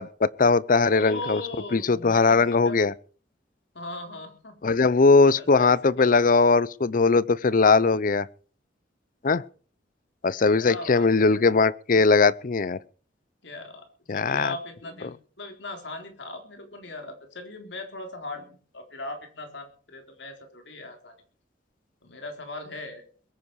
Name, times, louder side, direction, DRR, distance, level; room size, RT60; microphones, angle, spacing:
voice 1, 0.0-1.4 1.7-2.9 4.6-8.3 9.2-9.4 10.2-12.8 14.1-14.5, left 4 dB, 45° left, 0.6 m, -20 dB
voice 2, 0.9-2.8 3.7-4.6 5.3-6.3 10.5-11.5 13.4-13.9 14.1-21.2 22.0-23.0, left 2 dB, 70° left, 4.0 m, -39 dB
22.0 x 9.8 x 4.8 m
head